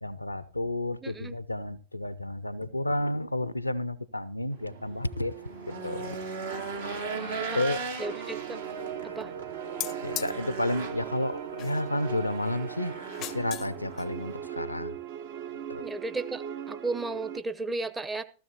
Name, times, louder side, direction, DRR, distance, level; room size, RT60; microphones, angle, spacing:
voice 1, 0.0-5.4 5.7-6.2 7.5-7.8 10.0-15.0 15.7-15.8, left 1 dB, 85° left, 0.5 m, -31 dB
voice 2, 1.0-1.4 7.1-7.6 8.0-8.6 9.0-9.3 15.8-18.2, right 3 dB, 15° right, 0.8 m, -34 dB
Race car auto racing / Engine, 4.5-14.6, right 4 dB, 70° right, 2.4 m, -39 dB
sound 1, 8.0-17.4, right 8 dB, 50° right, 0.9 m, -39 dB
sound 2, 9.8-10.3 11.6-12.0 13.0-13.7 14.0-14.1, left 13 dB, 35° left, 0.5 m, -37 dB
15.0 x 14.0 x 2.9 m
figure-of-eight pair, 90°, 0 cm